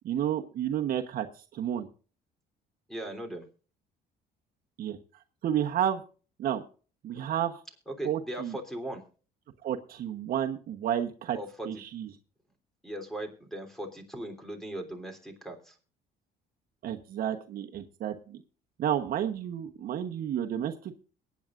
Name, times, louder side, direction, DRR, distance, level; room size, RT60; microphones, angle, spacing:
voice 1, 0.0-1.3 1.5-1.9 4.8-5.0 5.4-6.0 6.4-6.6 7.0-7.6 8.0-8.6 9.6-11.4 11.6-12.1 16.8-18.4 18.8-20.9, right 10 dB, 60° right, 5 dB, 1.1 m, -31 dB
voice 2, 2.9-3.4 7.9-9.0 11.3-11.7 12.8-15.8, right 1 dB, ahead, 5 dB, 3.3 m, -38 dB
22.5 x 9.5 x 2.5 m, 0.37 s
cardioid pair, 110°, 17 cm